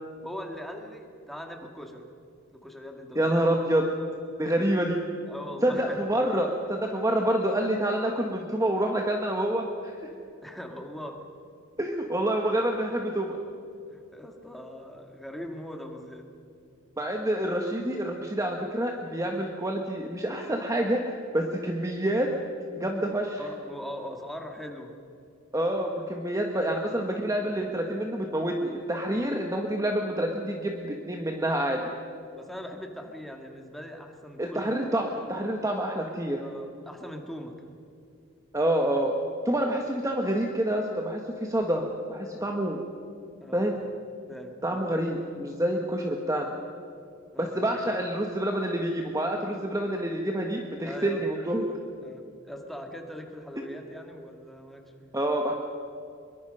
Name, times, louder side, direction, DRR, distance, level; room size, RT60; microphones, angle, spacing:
voice 1, 0.2-2.1 2.5-3.2 5.3-6.0 10.4-11.2 13.9-16.3 23.1-25.0 32.2-34.6 36.4-37.7 43.4-43.7 44.3-44.8 47.3-47.6 50.8-51.2 52.0-55.2, equal, ahead, 3 dB, 2.1 m, -41 dB
voice 2, 3.1-3.9 4.4-5.0 5.6-10.0 11.8-13.4 17.0-22.3 22.8-23.4 25.5-31.8 34.4-36.4 38.5-39.1 39.4-42.8 43.5-43.8 44.6-46.5 47.4-51.7 55.1-55.5, right 1 dB, 15° right, 2 dB, 1.4 m, -27 dB
24.0 x 23.0 x 5.5 m, 2.6 s
head